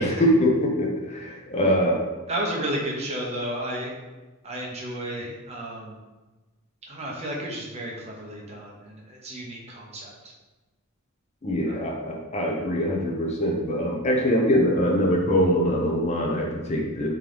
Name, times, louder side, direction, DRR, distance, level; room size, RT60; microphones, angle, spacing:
voice 1, 0.0-2.1 11.4-17.1, equal, 30° left, 0 dB, 0.6 m, -23 dB
voice 2, 2.3-3.9 4.4-6.0 6.9-10.3 11.7-11.8, right 1 dB, 30° right, -3 dB, 0.8 m, -32 dB
3.7 x 3.0 x 3.3 m, 1.2 s
head